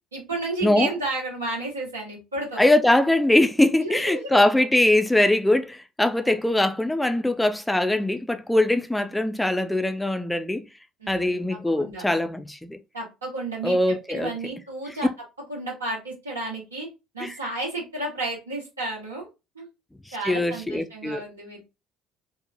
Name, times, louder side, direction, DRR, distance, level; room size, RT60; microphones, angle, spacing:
voice 1, 0.1-2.6 3.8-4.4 6.2-6.3 11.0-12.0 12.9-15.1 15.5-16.9 17.1-19.3 19.5-19.7 20.1-21.6, right 2 dB, 85° right, 1.1 m, -32 dB
voice 2, 2.6-10.7 11.1-12.8 13.6-14.3 17.2-17.3 20.1-21.2, left 1 dB, 5° left, 0.4 m, -22 dB
2.8 x 2.2 x 2.5 m
figure-of-eight pair, 55°, 0 cm